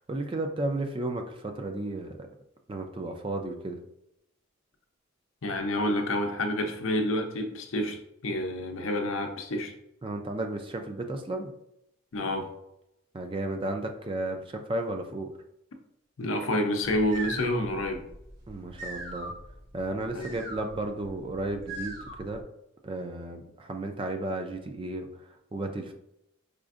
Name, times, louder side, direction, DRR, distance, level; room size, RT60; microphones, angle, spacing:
voice 1, 0.1-2.3 2.7-3.8 10.0-11.5 13.1-15.3 18.5-19.3 19.7-22.4 22.8-25.1 25.5-25.9, right 2 dB, 25° right, 5 dB, 0.4 m, -33 dB
voice 2, 5.4-8.0 8.2-9.7 12.1-12.5 16.2-18.1 20.1-20.3, left 1 dB, 80° left, 4 dB, 0.6 m, -28 dB
sound 1, 16.8-22.4, right 2 dB, 50° right, 1.1 m, -41 dB
4.9 x 2.5 x 2.4 m, 0.80 s
head